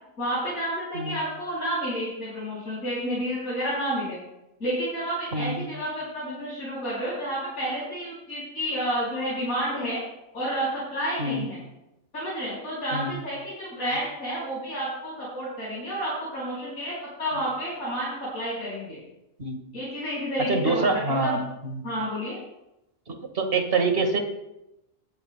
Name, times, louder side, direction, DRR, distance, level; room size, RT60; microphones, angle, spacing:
voice 1, 0.2-4.2 4.6-10.0 10.3-11.6 12.1-19.0 19.7-21.4 21.8-22.4, equal, 80° left, -9 dB, 6.0 m, -30 dB
voice 2, 5.3-5.7 11.2-11.5 12.9-13.2 19.4-19.6 20.5-21.8 23.1-24.2, right 3 dB, 40° right, 4 dB, 1.9 m, -26 dB
19.0 x 12.5 x 2.2 m, 0.89 s
omnidirectional pair, 1.5 m